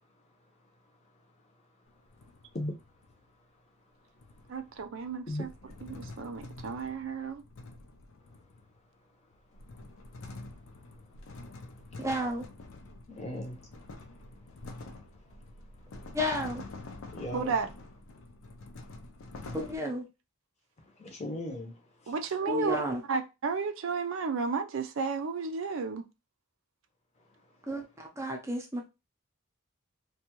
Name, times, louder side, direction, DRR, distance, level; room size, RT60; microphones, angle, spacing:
sound 1, 1.9-3.2 4.2-8.8 9.3-19.8, left 2 dB, 75° left, 0.5 m, -47 dB
voice 1, 4.5-5.5 5.8-7.4 17.3-17.7 22.1-26.0, right 5 dB, 65° right, 0.4 m, -33 dB
voice 2, 12.0-12.4 16.1-16.6 19.5-20.0 22.5-23.0 27.7-28.8, left 1 dB, 15° right, 0.6 m, -32 dB
voice 3, 13.1-13.6 17.1-17.6 21.0-22.1, left 1 dB, 30° left, 0.7 m, -37 dB
2.6 x 2.2 x 2.9 m
head